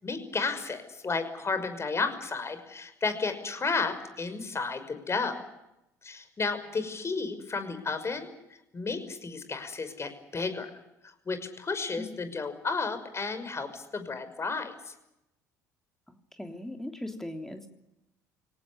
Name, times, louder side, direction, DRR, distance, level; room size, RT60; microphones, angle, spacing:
voice 1, 0.0-5.5 6.0-8.3 8.7-10.7 11.0-14.9, left 4 dB, 30° left, 9 dB, 5.7 m, -32 dB
voice 2, 16.1-17.7, left 1 dB, 5° left, 5 dB, 3.3 m, -39 dB
24.5 x 18.0 x 9.7 m, 0.87 s
hypercardioid pair, 60°, 9 cm